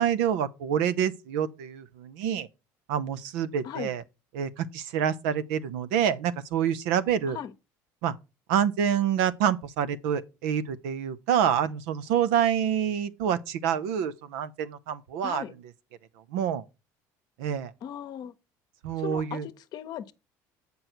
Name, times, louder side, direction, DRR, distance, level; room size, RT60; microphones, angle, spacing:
voice 1, 0.0-2.5 2.9-4.0 4.3-7.4 8.0-8.1 8.5-15.4 16.3-16.6 17.4-17.7 18.8-19.5, right 9 dB, 85° right, 0.7 m, -27 dB
voice 2, 15.2-15.5 17.8-18.3 19.0-20.1, left 10 dB, 60° left, 0.8 m, -37 dB
7.8 x 5.3 x 4.4 m
supercardioid pair, 95°, 8 cm